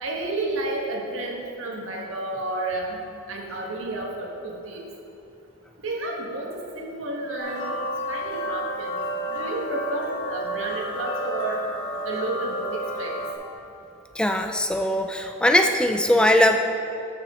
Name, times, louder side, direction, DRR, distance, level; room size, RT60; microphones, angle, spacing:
voice 1, 0.0-3.0 3.3-4.9 5.8-7.8 8.1-9.0 9.3-11.6 12.0-13.2, right 2 dB, 85° right, -1 dB, 1.5 m, -31 dB
sound 1, 7.4-13.3, equal, 60° left, 1.9 m, -31 dB
voice 2, 14.2-16.6, left 1 dB, 5° left, 5 dB, 0.3 m, -20 dB
12.5 x 6.2 x 3.7 m, 2.8 s
head